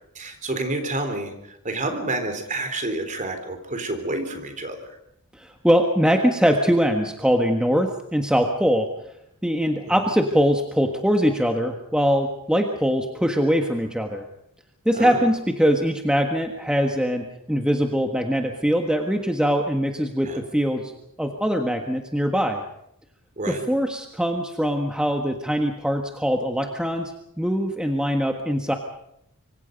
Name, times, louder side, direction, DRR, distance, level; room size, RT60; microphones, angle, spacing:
voice 1, 0.2-5.0 9.8-9.9 14.9-15.2 20.2-20.4 23.4-23.7, right 2 dB, 35° right, 7 dB, 3.8 m, -29 dB
voice 2, 5.3-8.9 9.4-14.2 14.8-20.9 21.2-22.6 23.5-27.1 27.4-28.7, equal, 5° right, 3 dB, 1.5 m, -22 dB
25.5 x 25.0 x 5.3 m, 0.76 s
head